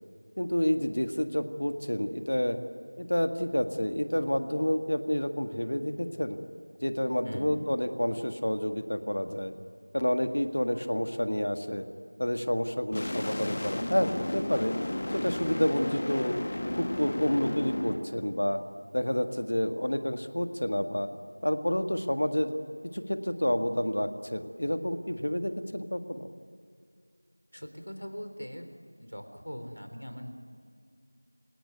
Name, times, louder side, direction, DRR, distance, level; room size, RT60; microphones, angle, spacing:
voice 1, 0.4-2.6 3.0-6.4 6.8-9.5 9.9-11.9 12.2-14.7 15.1-16.4 16.8-18.6 18.9-21.1 21.4-22.5 22.9-26.3, equal, 50° left, 8 dB, 1.8 m, -29 dB
voice 2, 7.3-7.6 27.5-28.7 29.0-30.3, equal, 75° left, 7 dB, 3.8 m, -41 dB
sound 1, 12.9-18.0, left 1 dB, 25° left, 1.4 m, -33 dB
28.0 x 17.5 x 9.5 m, 2.3 s
figure-of-eight pair, 175°, 0 cm